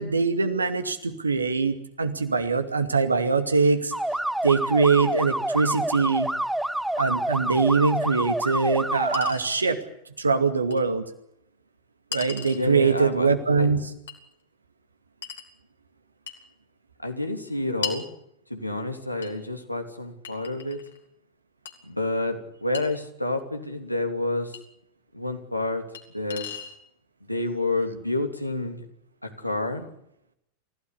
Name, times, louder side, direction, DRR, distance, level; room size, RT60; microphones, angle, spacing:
voice 1, 0.0-3.9 4.4-6.3 7.0-9.8 10.2-11.0 12.1-13.8, right 4 dB, 75° right, 8 dB, 2.3 m, -23 dB
sound 1, 3.9-9.3, right 1 dB, 5° right, 1.1 m, -27 dB
Chink clink, 8.1-8.2 9.1-9.5 10.7-10.8 12.1-12.6 14.1-14.2 15.2-15.5 16.3-16.4 17.8-18.1 19.2-19.3 20.2-21.0 21.7-21.8 22.7-22.9 24.5-24.6 25.9-26.0 26.3-26.8, left 7 dB, 65° left, 3.3 m, -36 dB
voice 2, 12.5-13.3 13.6-13.7 17.0-18.1 18.5-20.8 21.8-24.6 25.1-25.9 26.1-26.5 27.3-28.8 29.2-29.9, left 2 dB, 90° left, 4 dB, 3.1 m, -29 dB
28.5 x 16.0 x 8.5 m, 0.77 s
figure-of-eight pair, 90°, 0 cm